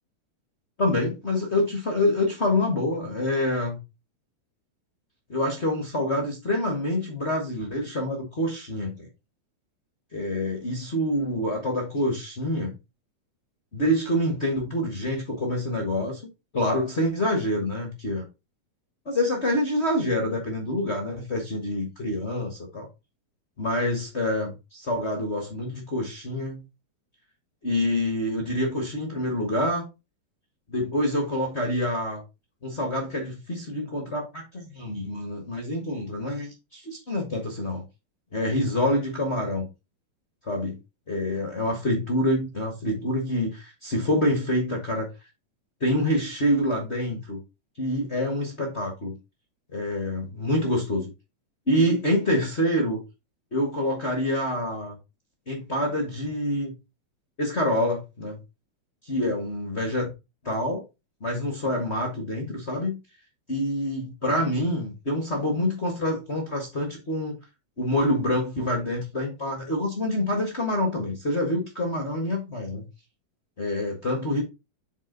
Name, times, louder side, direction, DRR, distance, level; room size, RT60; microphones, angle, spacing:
voice 1, 0.8-3.8 5.3-9.1 10.1-12.7 13.7-16.2 16.5-18.2 19.0-22.9 23.6-26.6 27.6-29.8 30.7-32.2 32.6-37.8 38.3-39.7 40.4-40.8 41.1-45.1 45.8-47.4 47.8-49.2 49.7-51.1 51.7-53.0 53.5-55.0 55.5-56.7 57.4-58.4 59.0-60.1 60.4-60.8 61.2-63.0 63.5-67.4 67.8-72.9 73.6-74.4, left 1 dB, 50° left, 0.7 m, -26 dB
7.4 x 4.4 x 3.9 m
omnidirectional pair, 3.6 m